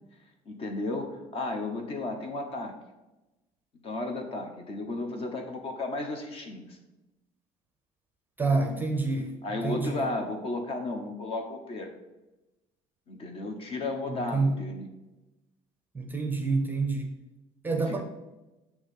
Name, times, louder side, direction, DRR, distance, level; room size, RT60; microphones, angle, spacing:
voice 1, 0.5-2.7 3.8-6.8 8.5-8.8 9.4-11.9 13.1-14.9 17.7-18.0, left 2 dB, 40° left, 4 dB, 1.1 m, -34 dB
voice 2, 8.4-9.4 9.6-9.9 14.3-14.6 15.9-17.2 17.6-18.0, right 3 dB, 15° right, 4 dB, 0.7 m, -27 dB
8.6 x 3.1 x 5.5 m, 1.0 s
cardioid pair, 140°, 14 cm